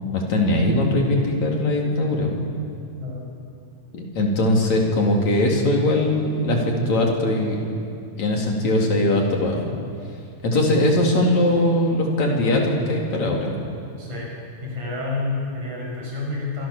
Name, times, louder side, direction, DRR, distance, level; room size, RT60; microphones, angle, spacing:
voice 1, 0.1-2.4 3.9-7.7 8.2-9.6 10.4-13.5, left 1 dB, 65° left, 0 dB, 4.8 m, -20 dB
voice 2, 10.5-10.9 14.0-14.3 14.6-16.7, left 3 dB, 85° right, -3 dB, 8.6 m, -29 dB
26.5 x 23.5 x 7.3 m, 2.4 s
omnidirectional pair, 3.4 m